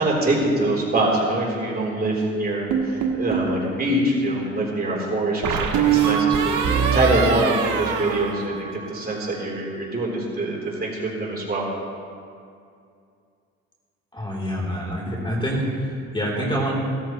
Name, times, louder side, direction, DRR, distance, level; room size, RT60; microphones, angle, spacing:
voice 1, 0.0-6.6 6.9-11.6, right 2 dB, 30° right, -4 dB, 3.5 m, -24 dB
sound 1, 2.7-3.5 5.4-9.1, right 7 dB, 75° right, 1.5 m, -22 dB
voice 2, 14.1-16.7, equal, 15° left, -4 dB, 3.3 m, -26 dB
17.0 x 13.5 x 3.1 m, 2.4 s
cardioid pair, 90°, 30 cm